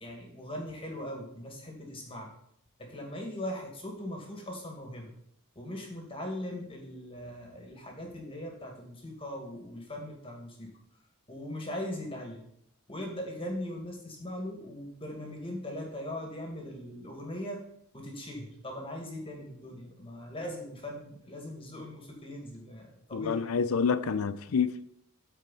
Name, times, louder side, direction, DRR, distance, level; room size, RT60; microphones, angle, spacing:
voice 1, 0.0-2.3 2.8-5.1 5.6-10.7 11.3-12.4 12.9-17.6 17.9-23.6, left 1 dB, 25° left, 2.0 m, -40 dB
voice 2, 23.1-24.9, left 5 dB, 80° left, 0.5 m, -28 dB
13.0 x 4.7 x 4.1 m
head